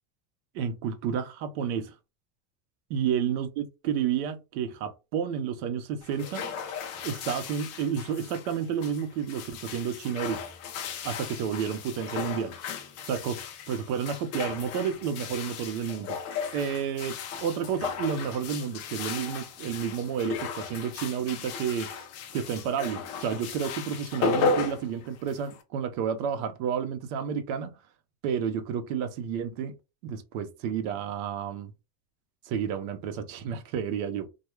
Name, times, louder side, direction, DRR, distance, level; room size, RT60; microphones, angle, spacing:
voice 1, 0.5-1.9 2.9-6.5 7.0-10.4 11.0-12.6 13.0-13.4 13.7-16.2 16.5-21.9 22.3-27.7 28.2-29.7 30.0-31.7 32.5-34.3, right 7 dB, 65° right, 0.7 m, -31 dB
sound 1, 6.0-25.6, left 5 dB, 35° left, 0.4 m, -35 dB
2.3 x 2.2 x 3.0 m
supercardioid pair, 150°, 45 cm